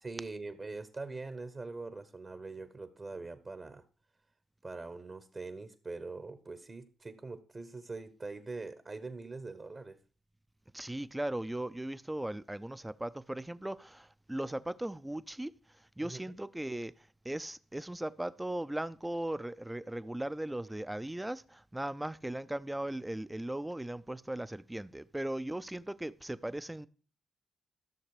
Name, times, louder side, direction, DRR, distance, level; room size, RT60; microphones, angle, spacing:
voice 1, 0.0-3.8 4.6-10.0 16.0-16.2, right 3 dB, 35° right, 1.1 m, -43 dB
voice 2, 10.7-15.5 16.0-16.9 17.2-26.9, right 1 dB, 10° right, 0.6 m, -38 dB
13.5 x 6.5 x 4.8 m
supercardioid pair, 50°, 0 cm